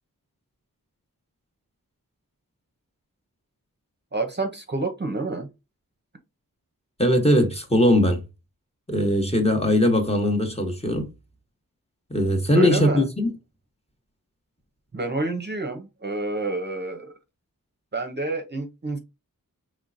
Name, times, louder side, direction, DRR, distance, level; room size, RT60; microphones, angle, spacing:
voice 1, 4.1-5.5 12.5-13.0 14.9-17.1 17.9-19.0, right 2 dB, 30° right, 0.7 m, -28 dB
voice 2, 7.0-8.2 8.9-11.1 12.1-13.3, left 1 dB, 20° left, 1.1 m, -20 dB
3.7 x 3.2 x 2.6 m
cardioid pair, 45°, 34 cm